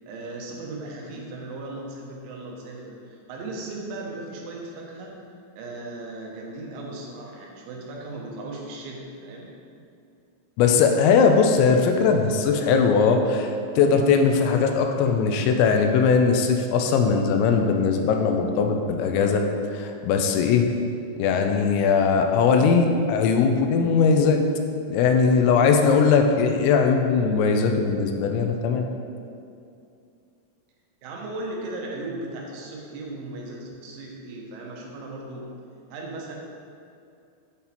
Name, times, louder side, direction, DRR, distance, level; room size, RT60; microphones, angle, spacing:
voice 1, 0.1-5.2 5.6-9.5 31.0-35.5 35.9-36.4, right 2 dB, 90° right, -1 dB, 3.4 m, -37 dB
voice 2, 10.6-20.7 21.2-24.4 24.9-28.9, left 5 dB, 85° left, 4 dB, 2.8 m, -20 dB
8.4 x 4.1 x 4.3 m, 2.5 s
omnidirectional pair, 5.2 m